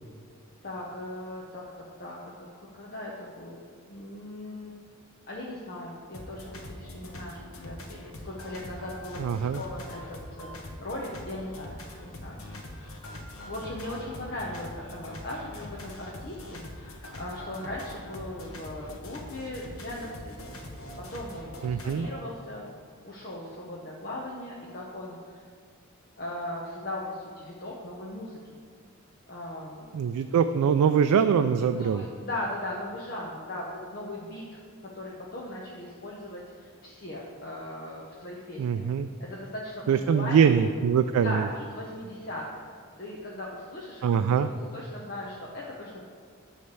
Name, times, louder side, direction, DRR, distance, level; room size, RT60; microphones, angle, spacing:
voice 1, 0.6-1.6 2.0-2.2 2.6-3.6 3.9-4.7 5.3-7.4 7.6-11.8 12.0-12.6 13.5-20.4 21.0-22.7 23.0-25.4 26.2-28.6 29.3-30.0 31.8-34.6 34.9-38.9 39.2-40.6 41.2-42.7 43.0-44.4 44.7-46.0, left 1 dB, 45° left, -4 dB, 0.8 m, -38 dB
sound 1, 6.1-22.1, left 1 dB, 75° left, 1.0 m, -43 dB
voice 2, 9.2-9.6 21.6-22.1 29.9-32.0 38.6-39.1 39.9-41.5 44.0-44.5, right 7 dB, 85° right, 9 dB, 0.3 m, -23 dB
9.5 x 3.3 x 6.8 m, 2.1 s
head